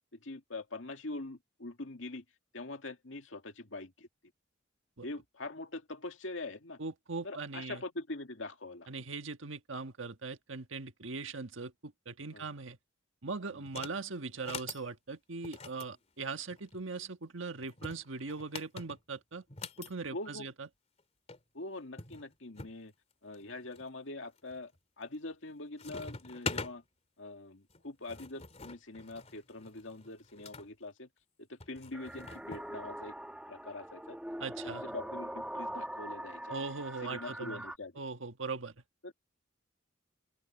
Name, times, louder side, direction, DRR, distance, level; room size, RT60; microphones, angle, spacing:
voice 1, 0.1-2.2 2.5-4.1 5.0-6.8 7.2-8.9 12.3-12.5 20.1-20.5 21.5-22.9 23.2-24.7 25.0-26.8 27.2-31.1 31.4-33.1 33.5-34.2 34.6-36.6 37.0-37.9 39.0-39.1, left 2 dB, 70° left, 2.4 m, -43 dB
voice 2, 6.8-7.8 8.9-12.8 13.2-19.4 19.8-20.7 34.4-34.9 36.5-37.6 38.0-38.7, right 4 dB, 80° right, 1.5 m, -40 dB
sound 1, 13.7-14.0 14.4-14.8 15.4-16.8 17.6-19.9 21.0-21.1 21.3-21.4 22.0-22.8 23.3-23.8 24.4-24.8 25.1-25.5 25.8-26.7 27.7-30.7 31.6-32.7, left 4 dB, 35° left, 2.8 m, -44 dB
sound 2, 31.9-37.8, right 1 dB, 5° right, 1.4 m, -42 dB
open air
head